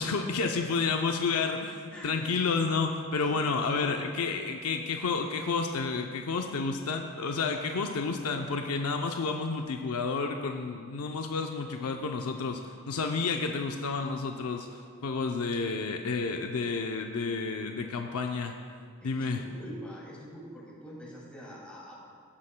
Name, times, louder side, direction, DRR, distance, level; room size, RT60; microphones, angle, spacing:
voice 1, 0.0-14.7 15.0-18.5 19.0-19.4, left 4 dB, 90° left, 3 dB, 0.6 m, -30 dB
voice 2, 1.9-2.3 3.2-4.2 19.0-22.1, equal, 5° left, -6 dB, 2.4 m, -44 dB
17.5 x 9.8 x 2.2 m, 2.3 s
head